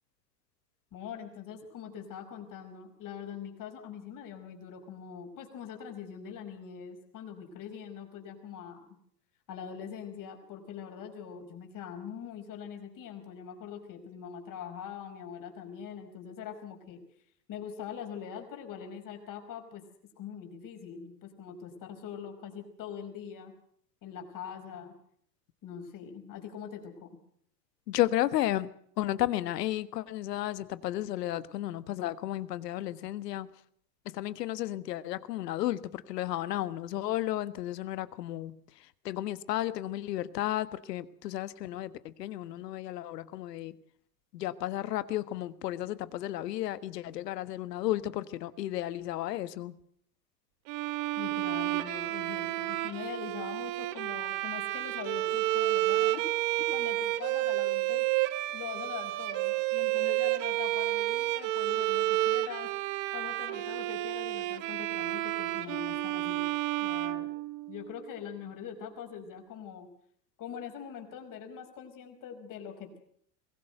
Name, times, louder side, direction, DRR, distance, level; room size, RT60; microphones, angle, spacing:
voice 1, 0.9-8.9 9.5-17.0 17.5-19.8 20.2-23.5 24.0-24.9 25.6-27.2 51.2-56.2 56.6-58.1 58.5-62.7 63.1-66.5 66.8-67.3 67.7-69.9 70.4-73.0, left 8 dB, 40° left, 5 dB, 5.3 m, -43 dB
voice 2, 27.9-28.7 29.0-33.5 34.0-43.8 44.3-49.7, left 14 dB, 70° left, 15 dB, 1.4 m, -33 dB
Bowed string instrument, 50.7-67.9, right 17 dB, 55° right, 1.3 m, -31 dB
22.5 x 17.5 x 7.9 m, 0.64 s
hypercardioid pair, 100°, 49 cm